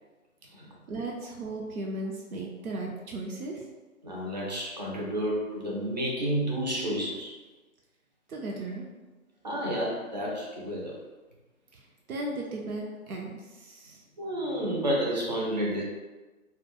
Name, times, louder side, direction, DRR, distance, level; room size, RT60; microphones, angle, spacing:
voice 1, 0.9-3.6 8.3-8.9 11.7-11.8 12.1-14.0, right 2 dB, 85° right, -1 dB, 0.6 m, -36 dB
voice 2, 4.0-7.3 9.4-11.0 14.2-15.8, equal, 35° right, -3 dB, 0.4 m, -30 dB
2.2 x 2.1 x 2.9 m, 1.2 s
figure-of-eight pair, 140°, 42 cm